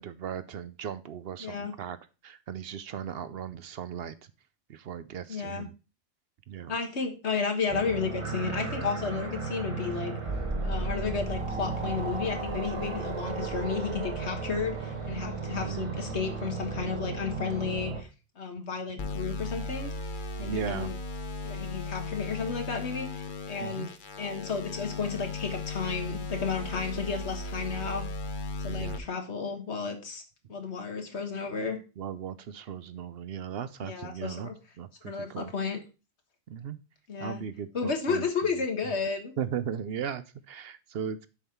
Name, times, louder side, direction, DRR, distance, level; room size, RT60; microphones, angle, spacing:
voice 1, 0.0-2.0 2.2-4.2 4.7-5.7 6.5-6.7 15.5-16.0 20.4-20.9 23.6-23.9 28.7-29.0 32.0-34.5 34.8-35.5 36.5-36.8 37.2-38.3 39.4-41.3, right 8 dB, 65° right, 13 dB, 0.8 m, -37 dB
voice 2, 1.4-1.7 5.3-5.6 6.7-10.1 10.6-18.1 18.4-19.9 20.4-20.9 21.4-28.0 28.6-30.2 30.5-31.8 33.8-34.5 35.0-35.8 37.1-37.4 37.7-39.3, left 5 dB, 80° left, 5 dB, 1.6 m, -32 dB
sound 1, 7.7-18.0, right 3 dB, 30° right, 1.0 m, -34 dB
sound 2, 19.0-29.0, left 3 dB, 50° left, 0.9 m, -36 dB
7.2 x 5.5 x 4.4 m, 0.31 s
omnidirectional pair, 1.1 m